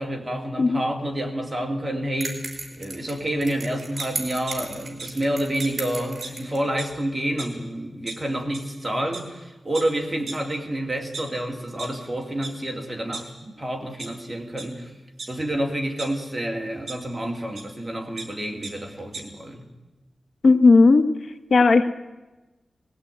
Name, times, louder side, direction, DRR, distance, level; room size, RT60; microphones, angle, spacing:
voice 1, 0.0-13.3 13.6-14.9 15.3-19.7, right 1 dB, 15° right, 1 dB, 2.6 m, -29 dB
sound 1, 2.2-6.6, right 3 dB, 40° right, 4.5 m, -35 dB
sound 2, 4.0-4.6 5.0-5.1 5.6-5.7 6.2-6.3 6.6-7.0 7.4-7.5 8.1-8.2 8.5-8.7 9.1-9.2 9.7-9.8 10.3-10.4 10.9-11.9 12.4-12.5 12.9-13.6 14.0-14.1 14.5-14.7 15.2-16.1 16.9-17.0 17.6-17.7 17.9-18.3 18.6-18.7 19.0-19.2, right 4 dB, 60° right, 4.6 m, -36 dB
voice 2, 20.4-21.1 21.5-21.9, left 3 dB, 65° left, 9 dB, 1.0 m, -15 dB
19.5 x 15.5 x 9.1 m, 1.1 s
wide cardioid pair, 140°, 0 cm